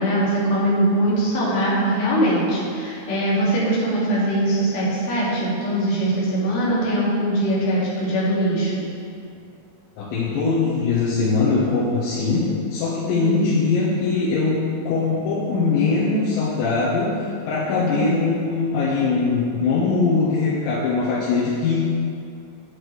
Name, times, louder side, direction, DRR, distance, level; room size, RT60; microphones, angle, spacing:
voice 1, 0.0-8.8 13.2-13.6 17.7-18.2, right 1 dB, 60° left, -8 dB, 4.0 m, -22 dB
voice 2, 10.0-21.8, left 4 dB, 90° left, -10 dB, 3.7 m, -21 dB
9.8 x 9.4 x 3.3 m, 2.4 s
omnidirectional pair, 5.0 m